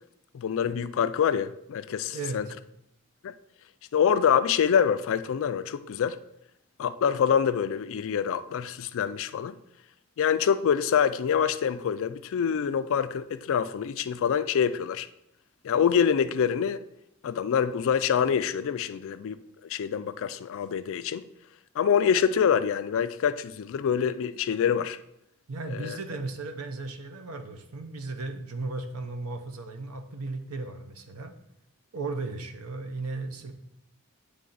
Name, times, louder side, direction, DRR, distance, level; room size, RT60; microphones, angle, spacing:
voice 1, 0.3-2.5 3.2-3.3 3.9-6.2 6.8-9.6 10.2-15.1 15.6-16.8 17.2-21.2 21.8-25.0 25.6-26.0, left 7 dB, 65° left, 0.3 m, -26 dB
voice 2, 2.1-2.4 24.2-24.4 25.5-31.3 31.9-33.5, right 3 dB, 85° right, 0.7 m, -36 dB
8.7 x 3.3 x 3.9 m
head